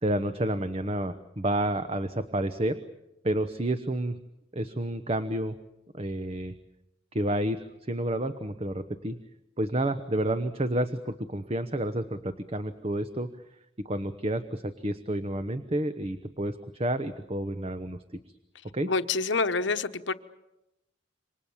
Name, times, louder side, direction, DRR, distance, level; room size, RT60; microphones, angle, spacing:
voice 1, 0.0-2.8 3.2-4.2 4.5-5.6 5.9-6.6 7.1-9.2 9.6-13.3 13.8-18.0 18.7-18.9, right 1 dB, 30° right, 10 dB, 1.0 m, -30 dB
voice 2, 18.8-20.1, left 4 dB, 65° left, 10 dB, 1.1 m, -27 dB
28.0 x 25.0 x 7.3 m, 0.91 s
head